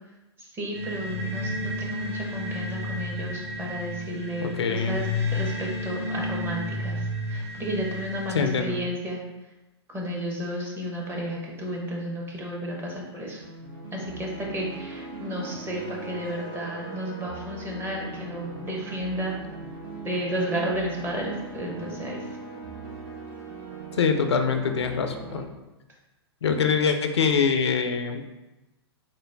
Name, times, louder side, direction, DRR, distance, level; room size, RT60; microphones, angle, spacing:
voice 1, 0.4-7.0 7.3-9.2 9.9-13.4 13.9-19.3 20.0-22.2, equal, 15° right, -2 dB, 0.8 m, -32 dB
sound 1, 0.7-8.5, left 1 dB, 90° right, 0.6 m, -32 dB
voice 2, 4.4-5.0 8.3-8.8 24.0-25.5 26.4-28.2, left 6 dB, 85° left, 6 dB, 0.4 m, -24 dB
sound 2, 13.4-25.4, right 3 dB, 50° right, 1.4 m, -40 dB
3.9 x 2.0 x 3.3 m, 1.0 s
hypercardioid pair, 120°, 14 cm